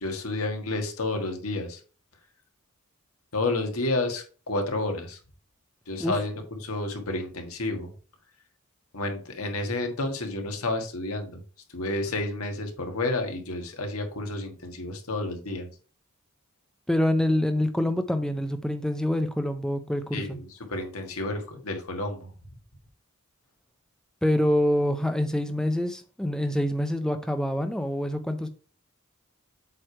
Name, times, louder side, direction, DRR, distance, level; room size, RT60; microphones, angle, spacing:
voice 1, 0.0-1.8 3.3-5.2 5.9-6.3 6.6-7.9 8.9-11.4 11.7-15.7 20.1-22.3, left 2 dB, 85° left, 1.5 m, -30 dB
voice 2, 16.9-20.4 24.2-28.5, left 1 dB, 5° left, 0.4 m, -26 dB
7.6 x 3.2 x 4.5 m
head